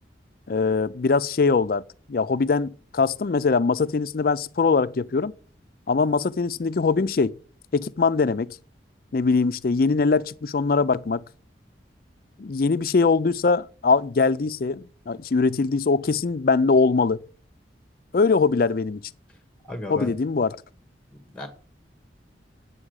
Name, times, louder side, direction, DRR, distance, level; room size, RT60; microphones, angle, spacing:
voice 1, 0.5-1.8 2.1-5.3 5.9-7.3 7.7-8.6 9.1-11.2 12.4-17.2 18.1-19.0 19.9-20.6, left 4 dB, 50° left, 0.4 m, -22 dB
voice 2, 19.7-20.1 21.1-21.5, left 1 dB, 5° left, 1.5 m, -35 dB
8.9 x 7.3 x 6.4 m
head